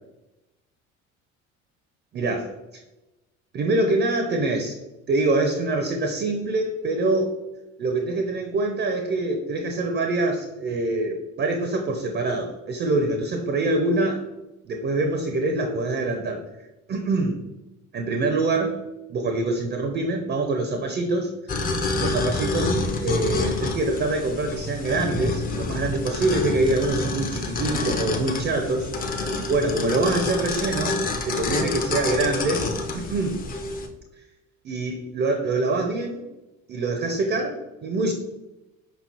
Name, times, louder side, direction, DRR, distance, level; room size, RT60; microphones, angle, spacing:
voice 1, 2.1-2.5 3.5-4.8 5.1-7.4 7.8-14.2 14.7-16.4 16.9-17.4 17.9-18.8 19.1-21.3 22.0-28.9 29.5-31.0 31.3-33.4 34.6-36.2 36.7-38.1, right 2 dB, 25° right, 4 dB, 0.5 m, -25 dB
sound 1, 21.5-33.9, left 3 dB, 20° left, 0.5 m, -28 dB
5.1 x 3.0 x 2.8 m, 1.0 s
figure-of-eight pair, 60°, 41 cm